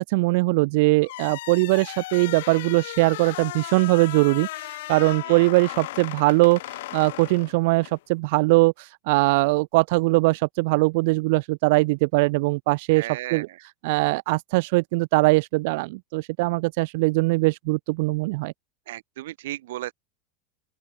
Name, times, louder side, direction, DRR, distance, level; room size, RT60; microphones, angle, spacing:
voice 1, 0.0-13.5 13.8-18.5, right 24 dB, 55° right, 0.5 m, -21 dB
sound 1, 1.0-8.0, left 17 dB, 75° left, 0.6 m, -36 dB
voice 2, 12.9-13.6 18.9-19.9, right 15 dB, 85° right, 3.2 m, -35 dB
open air
supercardioid pair, 170°, 0 cm